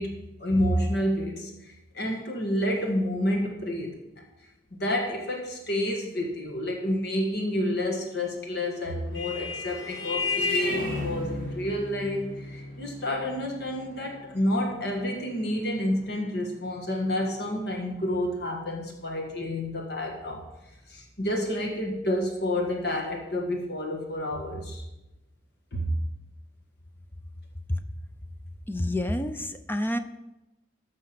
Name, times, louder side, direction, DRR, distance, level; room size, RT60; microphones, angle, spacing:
voice 1, 0.0-4.0 4.7-20.4 20.9-24.8 25.7-26.0, left 1 dB, 55° left, 1 dB, 1.7 m, -29 dB
Vehicle horn car horn honking, 8.5-17.5, left 3 dB, 85° left, 4.4 m, -34 dB
voice 2, 28.7-30.0, left 1 dB, 10° left, 9 dB, 0.6 m, -28 dB
13.5 x 6.2 x 5.9 m, 0.97 s
head